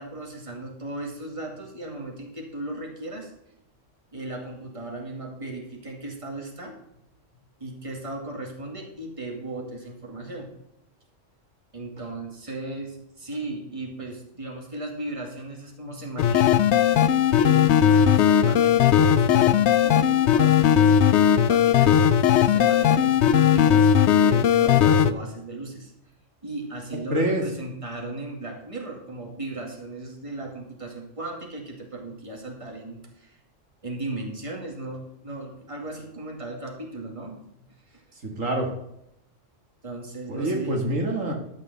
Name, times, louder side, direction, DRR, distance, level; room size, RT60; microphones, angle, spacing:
voice 1, 0.0-3.3 4.1-6.8 7.6-10.5 11.7-16.7 17.3-19.5 19.8-21.2 21.5-25.9 26.4-33.4 33.8-37.5 37.9-38.0 39.8-40.8, right 2 dB, 25° right, 0 dB, 2.3 m, -36 dB
sound 1, 16.2-25.1, left 9 dB, 70° left, 0.8 m, -18 dB
voice 2, 27.1-27.4 38.2-38.7 40.3-41.3, right 1 dB, 90° right, 1 dB, 2.4 m, -25 dB
13.0 x 5.3 x 6.9 m, 0.78 s
omnidirectional pair, 1.3 m